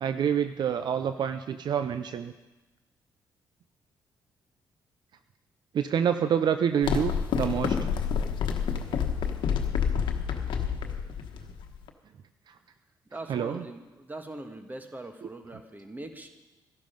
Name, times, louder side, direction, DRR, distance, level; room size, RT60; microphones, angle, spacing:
voice 1, 0.0-2.3 5.7-7.9 12.5-12.6 13.3-13.6 15.2-15.3, right 8 dB, 60° right, 10 dB, 0.6 m, -27 dB
sound 1, 6.8-11.9, left 7 dB, 75° left, 1.2 m, -28 dB
voice 2, 13.1-16.3, right 2 dB, 20° right, 6 dB, 1.7 m, -41 dB
13.5 x 11.5 x 5.2 m, 1.1 s
supercardioid pair, 65°, 8 cm